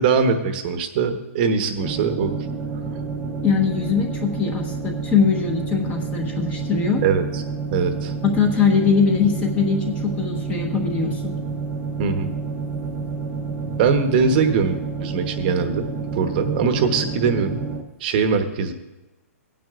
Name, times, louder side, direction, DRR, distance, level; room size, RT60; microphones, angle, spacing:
voice 1, 0.0-2.4 7.0-7.4 7.7-8.1 12.0-12.3 13.6-17.6 18.0-18.7, right 5 dB, 40° right, 8 dB, 1.1 m, -22 dB
sound 1, 1.8-17.8, right 4 dB, 15° right, 0.9 m, -29 dB
voice 2, 3.4-7.0 8.2-11.3, left 6 dB, 15° left, 2 dB, 1.2 m, -21 dB
18.0 x 9.4 x 2.5 m, 1.1 s
hypercardioid pair, 155°, 8 cm